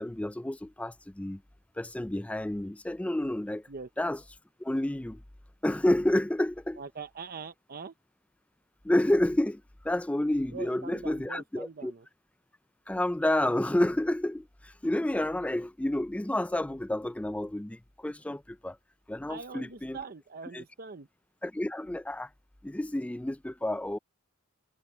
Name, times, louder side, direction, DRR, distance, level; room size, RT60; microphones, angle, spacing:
voice 1, 0.0-1.4 1.8-3.6 4.0-4.2 4.6-5.2 5.6-6.8 8.8-11.9 12.9-18.8 19.1-20.0 20.5-20.6 21.4-22.3 22.6-24.0, left 1 dB, 5° left, 0.3 m, -29 dB
voice 2, 6.8-7.9 10.5-12.1 19.3-21.1, right 5 dB, 45° right, 0.7 m, -43 dB
head